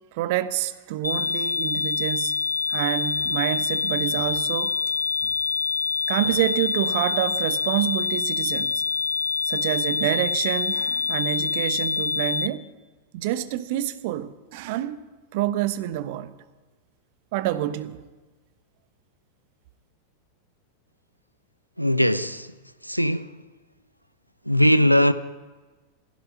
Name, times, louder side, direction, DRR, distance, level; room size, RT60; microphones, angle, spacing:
voice 1, 0.1-2.4 2.7-4.7 5.2-5.3 6.1-8.8 9.5-12.7 13.1-15.0 15.3-16.4 17.3-18.0, right 13 dB, 50° right, 0.9 m, -27 dB
sound 1, 1.0-12.5, left 6 dB, 75° left, 0.4 m, -26 dB
voice 2, 21.8-22.5 22.8-23.4 24.4-25.1, equal, 90° right, 0.7 m, -20 dB
16.5 x 15.0 x 5.6 m
figure-of-eight pair, 90°, 0 cm